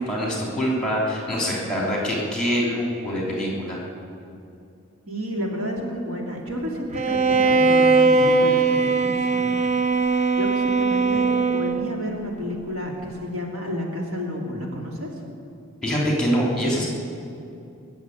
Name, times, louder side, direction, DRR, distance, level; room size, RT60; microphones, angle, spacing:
voice 1, 0.0-3.8 15.8-16.9, equal, 5° left, -3 dB, 3.1 m, -24 dB
voice 2, 5.1-9.6 10.3-15.1, equal, 75° right, -1 dB, 2.8 m, -31 dB
Bowed string instrument, 6.9-12.0, right 3 dB, 30° right, 0.5 m, -20 dB
21.0 x 7.2 x 9.4 m, 2.6 s
head